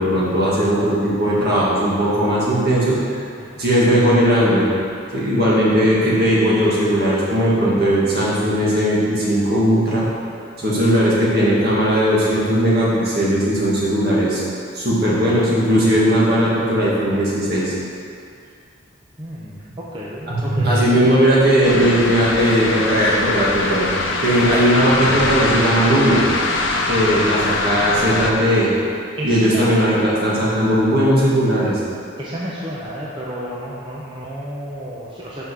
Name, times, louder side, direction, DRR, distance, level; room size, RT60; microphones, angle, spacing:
voice 1, 0.0-3.0 3.6-4.7 5.1-10.0 10.6-14.4 14.7-17.7 20.3-23.8 24.2-26.2 26.9-28.7 29.2-31.8, equal, 55° right, -7 dB, 1.9 m, -17 dB
voice 2, 19.2-21.1 29.2-29.6 32.2-35.4, equal, 25° right, -7 dB, 0.8 m, -31 dB
sound 1, 21.6-28.3, left 3 dB, 80° left, 0.7 m, -23 dB
5.7 x 5.3 x 6.3 m, 2.4 s
head